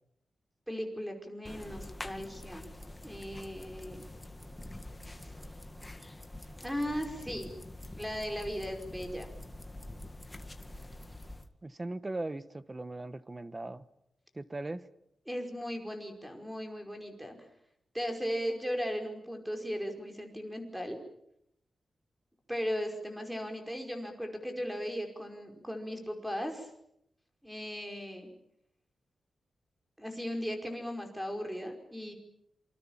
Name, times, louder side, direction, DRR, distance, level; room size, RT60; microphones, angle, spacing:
voice 1, 0.7-2.7 3.0-4.1 5.2-5.3 6.6-7.5 7.9-9.3 15.3-17.4 17.9-21.0 22.5-26.7 27.4-28.3 30.0-32.1, equal, 5° right, 4 dB, 5.2 m, -37 dB
sound 1, 1.4-11.5, left 1 dB, 15° left, 1.9 m, -46 dB
voice 2, 11.6-13.9 14.3-14.9, right 2 dB, 20° right, 14 dB, 1.2 m, -39 dB
27.0 x 26.0 x 7.4 m, 0.76 s
wide cardioid pair, 135°, 0 cm